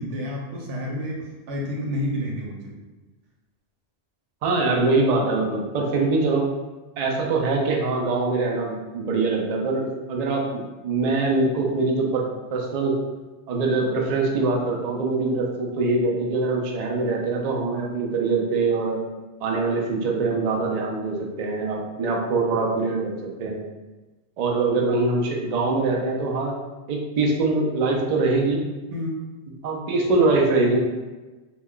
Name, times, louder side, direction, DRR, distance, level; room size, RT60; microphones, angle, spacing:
voice 1, 0.0-2.7 28.9-29.2, left 1 dB, 90° right, -2 dB, 1.0 m, -30 dB
voice 2, 4.4-6.5 7.0-12.2 12.5-13.0 13.5-19.0 19.4-23.1 23.4-23.6 24.4-26.6 26.9-28.6 29.6-30.8, right 3 dB, 65° right, -1 dB, 0.4 m, -23 dB
2.3 x 2.1 x 3.6 m, 1.2 s
omnidirectional pair, 1.2 m